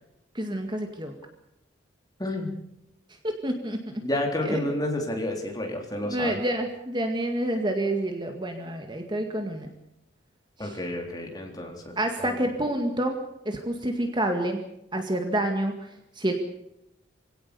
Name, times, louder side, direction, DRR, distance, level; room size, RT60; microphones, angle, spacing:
voice 1, 0.3-1.1 3.2-4.0 4.4-4.7 6.0-9.7 10.6-10.8 12.0-13.2 13.5-14.6 14.9-15.7 16.2-16.3, right 1 dB, 25° right, 4 dB, 1.9 m, -28 dB
voice 2, 2.2-2.5 4.0-6.4 10.6-12.0 12.2-12.4, left 1 dB, 20° left, 1 dB, 3.7 m, -30 dB
24.0 x 17.5 x 6.9 m, 0.84 s
head